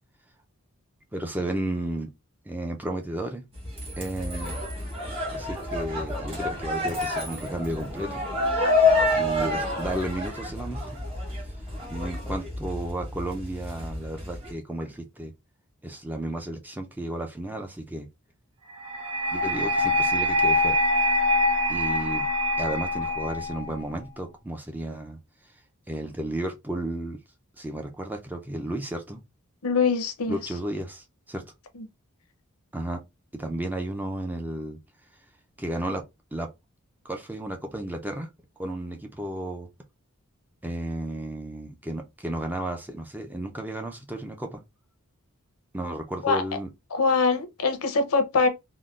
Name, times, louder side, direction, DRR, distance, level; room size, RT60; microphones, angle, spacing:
voice 1, 1.1-2.1 2.4-3.4 4.0-4.6 5.3-8.2 9.2-10.8 11.9-15.3 15.8-18.1 19.3-20.8 21.7-22.3 22.6-25.2 25.4-25.5 25.9-27.2 27.6-29.2 30.3-31.4 32.7-33.0 33.3-34.8 35.6-36.0 36.3-36.5 37.0-38.3 38.6-39.7 40.6-44.6 45.7-46.7, right 1 dB, 10° right, 0.4 m, -33 dB
sound 1, 3.5-14.5, left 2 dB, 25° right, 1.0 m, -28 dB
sound 2, 18.8-23.8, left 1 dB, 90° right, 0.7 m, -24 dB
voice 2, 29.6-30.4 31.8-31.9 46.2-46.4 46.9-48.5, left 4 dB, 75° left, 0.6 m, -23 dB
3.6 x 2.1 x 2.3 m
head